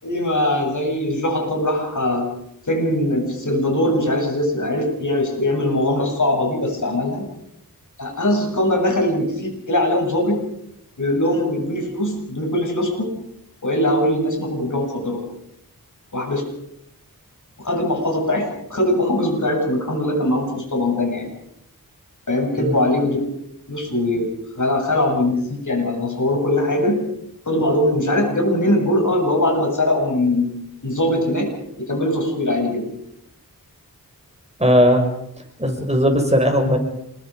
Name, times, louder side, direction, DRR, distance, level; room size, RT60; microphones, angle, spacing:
voice 1, 0.0-2.3 2.7-7.3 8.0-10.4 11.0-13.2 13.6-15.2 16.1-16.5 17.6-21.3 22.3-23.2 23.7-27.1 27.5-30.5 30.8-31.5 31.8-32.9, left 1 dB, 55° left, 2 dB, 7.7 m, -21 dB
voice 2, 34.6-35.0 35.6-36.8, equal, 20° right, 3 dB, 6.2 m, -17 dB
27.0 x 22.5 x 5.1 m, 0.77 s
wide cardioid pair, 55°, 36 cm